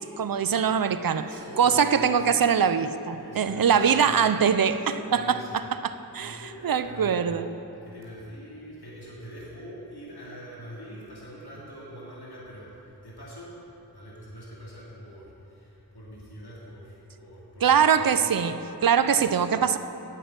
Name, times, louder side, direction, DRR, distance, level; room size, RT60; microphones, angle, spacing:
voice 1, 0.0-1.2 1.6-7.5 17.6-19.8, right 7 dB, 65° right, 11 dB, 0.5 m, -23 dB
voice 2, 1.0-2.2 3.1-4.3 4.7-5.6 5.8-13.5 13.9-18.2 19.2-19.3, equal, 85° left, -6 dB, 2.7 m, -44 dB
9.1 x 8.7 x 8.5 m, 2.9 s
wide cardioid pair, 45°, 38 cm